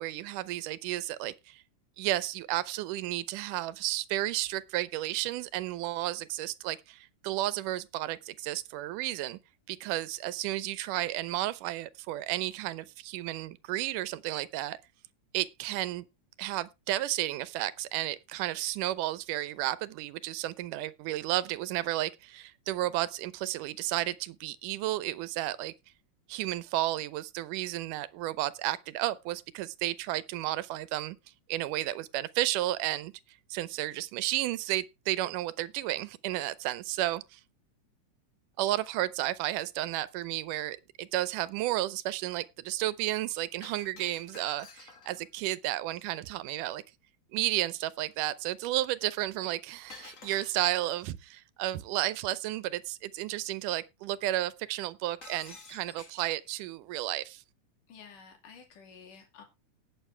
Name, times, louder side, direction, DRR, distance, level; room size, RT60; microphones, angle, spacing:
voice 1, 0.0-1.6 2.0-9.4 9.7-14.8 15.3-16.1 16.4-25.7 26.3-31.2 31.5-33.1 33.5-37.4 38.6-46.8 47.3-57.4, right 15 dB, 90° right, 2.3 m, -32 dB
Shatter, 43.6-45.3 49.9-50.9 55.2-56.5, left 4 dB, 40° left, 1.1 m, -50 dB
voice 2, 57.9-59.4, left 6 dB, 85° left, 4.2 m, -51 dB
18.5 x 7.1 x 3.3 m
omnidirectional pair, 3.6 m